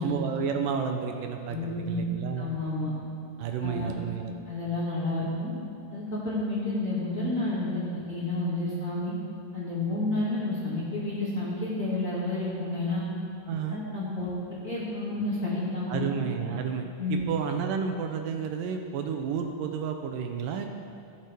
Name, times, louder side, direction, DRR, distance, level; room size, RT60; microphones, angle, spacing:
voice 1, 0.0-2.5 3.4-4.3 13.5-13.8 15.9-20.7, right 6 dB, 80° right, 4 dB, 2.3 m, -31 dB
voice 2, 1.5-2.0 2.4-2.9 3.6-3.9 4.5-5.5 5.9-9.1 9.5-13.0 13.7-14.3 14.6-16.1 17.0-17.2, left 2 dB, 25° left, -9 dB, 2.1 m, -30 dB
15.5 x 8.3 x 3.5 m, 2.5 s
omnidirectional pair, 3.9 m